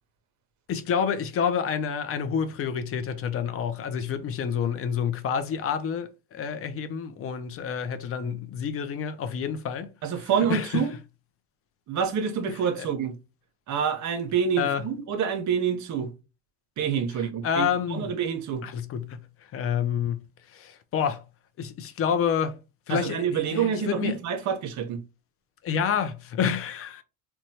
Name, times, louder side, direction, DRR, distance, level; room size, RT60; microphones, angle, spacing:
voice 1, 0.7-9.9 10.5-10.8 12.8-12.9 14.6-14.8 17.4-18.1 18.6-19.2 19.5-20.2 20.5-21.2 21.6-22.5 22.9-24.2 25.6-27.0, left 7 dB, 35° left, 0.5 m, -28 dB
voice 2, 10.0-10.9 11.9-13.2 13.7-16.1 16.8-18.6 22.9-25.0, right 7 dB, 50° right, 0.8 m, -27 dB
3.0 x 2.2 x 2.7 m
supercardioid pair, 90°, 39 cm